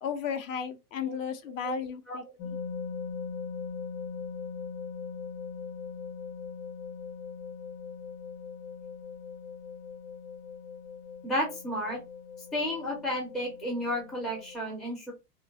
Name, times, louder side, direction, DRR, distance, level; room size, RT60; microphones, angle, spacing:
voice 1, 0.0-2.6, left 7 dB, 60° left, 0.7 m, -34 dB
voice 2, 1.5-1.8 2.1-2.2 11.2-12.0 12.5-15.1, equal, ahead, 0.3 m, -32 dB
sound 1, 2.4-14.6, left 5 dB, 35° left, 1.0 m, -40 dB
2.9 x 2.1 x 2.8 m
hypercardioid pair, 110°, 46 cm